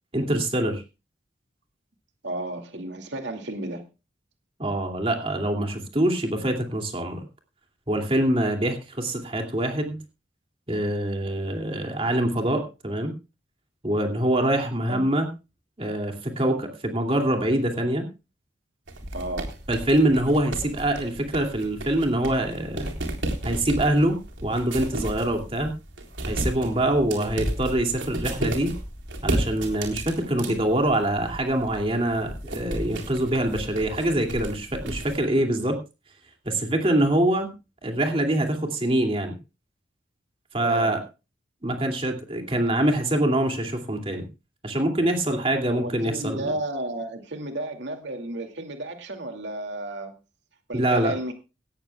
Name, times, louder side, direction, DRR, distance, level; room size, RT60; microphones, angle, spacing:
voice 1, 0.1-0.8 4.6-7.2 7.9-10.0 10.7-13.1 13.8-15.3 15.8-18.1 19.7-22.9 23.4-25.7 26.3-28.7 29.2-35.8 36.5-37.5 37.8-39.4 40.5-41.0 41.6-44.3 44.6-46.5 50.7-51.1, right 1 dB, 30° right, 2.6 m, -24 dB
voice 2, 2.2-3.8 14.9-15.1 19.1-19.5 40.6-40.9 45.7-50.1 50.7-51.3, right 1 dB, 75° right, 2.5 m, -32 dB
sound 1, 18.9-35.2, right 1 dB, 90° right, 3.8 m, -33 dB
18.0 x 14.0 x 2.3 m
head